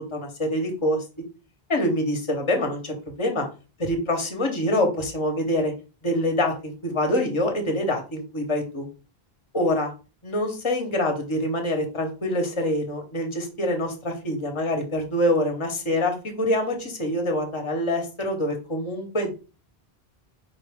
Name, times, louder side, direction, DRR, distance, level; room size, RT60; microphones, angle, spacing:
voice 1, 0.1-1.0 1.7-3.5 3.8-5.7 6.0-8.9 9.5-9.9 10.2-19.3, left 1 dB, 30° left, 4 dB, 0.9 m, -25 dB
4.9 x 2.7 x 3.5 m, 0.33 s
omnidirectional pair, 1.0 m